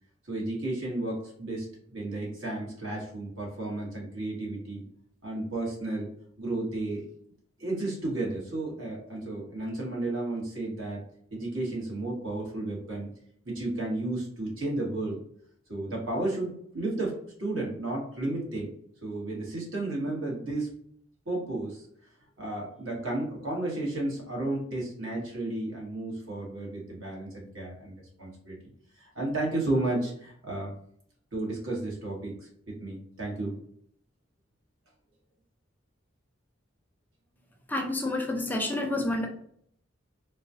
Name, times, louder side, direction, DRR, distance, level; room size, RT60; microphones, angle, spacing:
voice 1, 0.3-4.8 5.2-6.1 6.4-7.0 7.6-11.0 11.3-13.1 13.4-15.2 15.7-18.7 19.0-20.7 21.2-21.8 22.4-28.6 29.0-30.7 31.3-33.5, right 2 dB, 75° right, -3 dB, 1.4 m, -33 dB
voice 2, 37.7-39.3, left 2 dB, 10° left, 2 dB, 0.4 m, -29 dB
4.0 x 2.3 x 2.7 m, 0.66 s
head